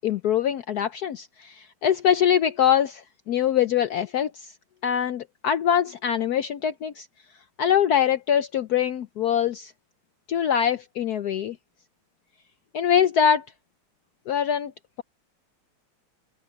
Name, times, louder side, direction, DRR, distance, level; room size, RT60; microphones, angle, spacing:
voice 1, 0.0-4.3 4.8-7.1 7.6-9.7 10.3-11.6 12.7-13.4 14.3-14.7, left 9 dB, 75° left, 0.9 m, -23 dB
open air
omnidirectional pair, 2.4 m